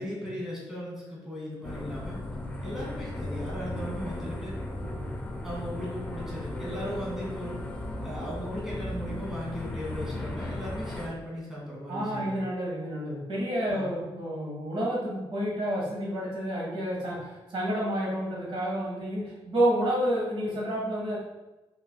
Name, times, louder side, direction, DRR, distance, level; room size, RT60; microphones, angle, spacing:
voice 1, 0.0-2.2 2.6-4.5 5.4-7.6 8.0-12.4 13.7-14.0, equal, 5° right, -7 dB, 1.4 m, -37 dB
sound 1, 1.6-11.1, left 1 dB, 15° left, 0.5 m, -36 dB
voice 2, 11.9-21.2, right 1 dB, 65° right, -4 dB, 1.4 m, -29 dB
4.5 x 4.1 x 2.2 m, 1.1 s
wide cardioid pair, 165°, 10 cm